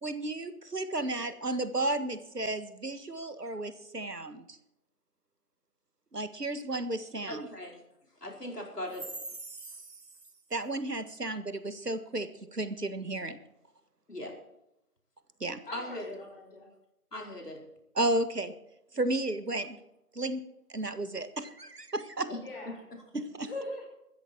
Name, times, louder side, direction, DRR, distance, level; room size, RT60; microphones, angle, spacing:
voice 1, 0.0-4.6 6.1-7.5 9.5-9.6 10.5-13.4 15.4-15.6 17.9-18.5 18.9-19.8 20.1-20.4 20.7-22.3 23.1-23.5, right 2 dB, 90° right, 11 dB, 1.7 m, -33 dB
voice 2, 7.3-7.8 8.2-9.1 14.1-14.4 15.7-16.2 17.1-17.6 22.3-22.4 22.9-23.0, left 1 dB, 90° left, 1 dB, 4.9 m, -39 dB
voice 3, 15.7-16.7 22.4-22.8 23.4-23.9, left 2 dB, 35° left, 1 dB, 5.2 m, -41 dB
15.5 x 13.5 x 4.6 m, 0.85 s
figure-of-eight pair, 160°, 46 cm